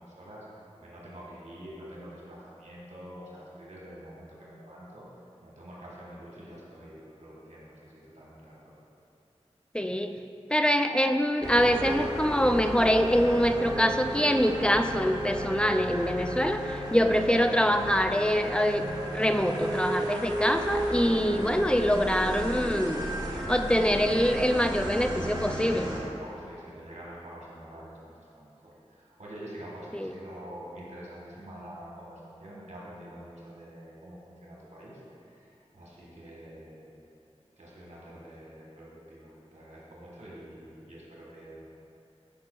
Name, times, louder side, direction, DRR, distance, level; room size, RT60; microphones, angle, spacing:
voice 1, 0.0-5.1 5.4-8.8 25.9-37.0 37.6-41.6, right 1 dB, 85° right, -6 dB, 1.2 m, -46 dB
voice 2, 9.7-10.1 10.5-18.8 19.1-23.0 23.5-25.9 29.9-30.1, equal, 10° left, 6 dB, 0.3 m, -24 dB
sound 1, 11.4-26.0, equal, 35° right, 1.2 m, -33 dB
10.5 x 5.2 x 2.2 m, 2.7 s
wide cardioid pair, 50°, 11 cm